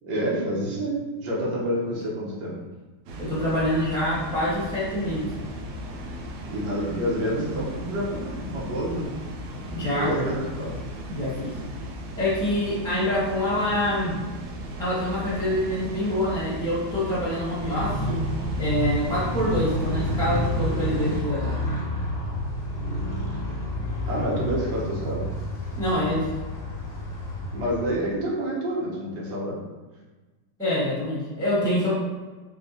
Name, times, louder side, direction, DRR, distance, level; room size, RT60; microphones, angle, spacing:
voice 1, 0.0-2.6 6.5-9.1 9.5-10.9 24.1-25.2 27.5-29.6, right 1 dB, 60° right, -5 dB, 1.6 m, -28 dB
Water, 3.1-21.2, equal, 85° right, 1.6 m, -37 dB
voice 2, 3.2-5.3 9.7-10.3 11.1-11.6 12.2-14.2 14.8-18.2 18.6-21.6 25.7-26.3 30.6-31.9, equal, 5° left, -8 dB, 1.0 m, -26 dB
Motorcycle, 17.5-28.2, left 1 dB, 40° left, 1.1 m, -29 dB
3.7 x 3.4 x 4.1 m, 1.2 s
omnidirectional pair, 2.2 m